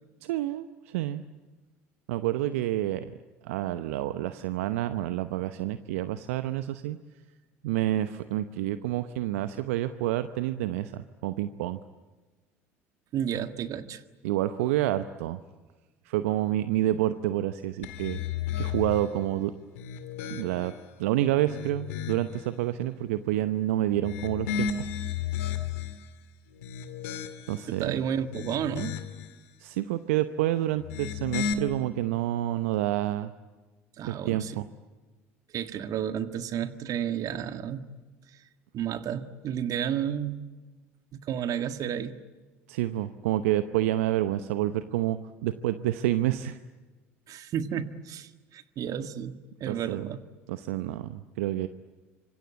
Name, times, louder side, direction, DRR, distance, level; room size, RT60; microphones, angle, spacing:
voice 1, 0.2-1.2 2.1-3.1 3.4-7.0 7.6-11.8 14.2-15.4 16.1-18.2 18.6-19.5 20.3-20.7 21.0-24.7 27.5-28.0 29.6-33.3 34.0-34.7 42.7-46.6 49.7-50.1 50.5-51.7, right 14 dB, 75° right, 11 dB, 0.8 m, -28 dB
voice 2, 13.1-14.0 27.7-29.0 34.0-34.6 35.5-37.8 38.7-40.5 41.1-42.2 47.3-50.2, right 9 dB, 50° right, 9 dB, 1.8 m, -32 dB
sound 1, 17.8-19.1 19.7-20.8 21.3-22.4 23.9-26.0 26.5-27.7 28.2-29.3 30.7-31.5, left 8 dB, 75° left, 2.0 m, -34 dB
26.0 x 24.5 x 8.7 m, 1.3 s
hypercardioid pair, 65°, 8 cm